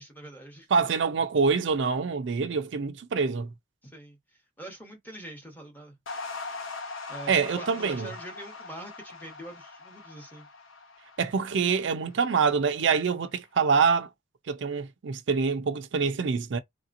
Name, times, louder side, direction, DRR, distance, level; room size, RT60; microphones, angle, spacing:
voice 1, 0.0-0.7 3.8-4.2 4.6-6.0 7.1-10.5, right 1 dB, 10° left, 0.9 m, -44 dB
voice 2, 0.7-3.5 7.3-8.1 11.2-14.1 14.5-16.6, right 5 dB, 65° right, 0.4 m, -25 dB
sound 1, 6.1-12.5, left 4 dB, 80° left, 0.9 m, -41 dB
3.2 x 2.8 x 2.5 m
head